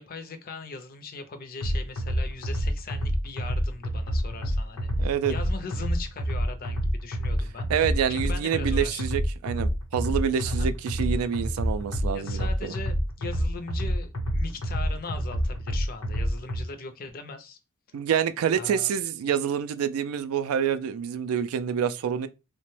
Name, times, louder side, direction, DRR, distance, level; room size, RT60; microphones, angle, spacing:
voice 1, 0.0-7.7 8.1-9.0 10.4-10.7 12.1-17.6 18.5-18.9, left 4 dB, 45° left, 0.4 m, -40 dB
sound 1, 1.6-16.6, equal, 85° left, 0.8 m, -28 dB
voice 2, 5.0-5.3 7.7-12.7 17.9-22.3, right 8 dB, 85° right, 0.3 m, -27 dB
2.9 x 2.1 x 3.0 m
head